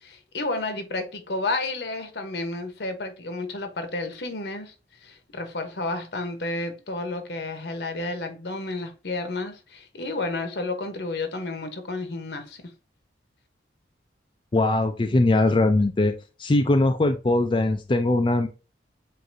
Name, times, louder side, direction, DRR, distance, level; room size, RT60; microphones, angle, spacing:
voice 1, 0.0-4.7 5.0-12.6, left 2 dB, 75° left, 1.0 m, -31 dB
voice 2, 14.5-16.1 16.4-18.5, left 2 dB, 30° left, 0.4 m, -21 dB
7.7 x 2.6 x 2.6 m
head